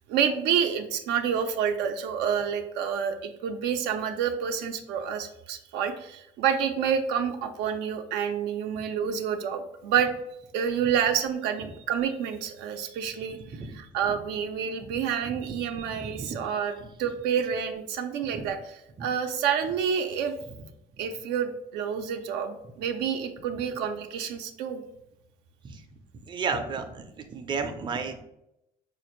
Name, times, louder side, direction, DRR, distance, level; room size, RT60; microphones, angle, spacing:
voice 1, 0.1-10.1 10.5-13.4 13.7-18.6 19.0-20.4 21.0-24.8, right 8 dB, 90° right, 6 dB, 0.4 m, -28 dB
voice 2, 13.3-13.7 14.1-14.2 14.8-15.0 15.3-15.6 16.0-16.4 18.3-18.6 25.6-25.8 26.3-28.2, right 5 dB, 30° right, 6 dB, 0.4 m, -34 dB
4.1 x 2.5 x 3.0 m, 0.83 s
cardioid pair, 110°, 17 cm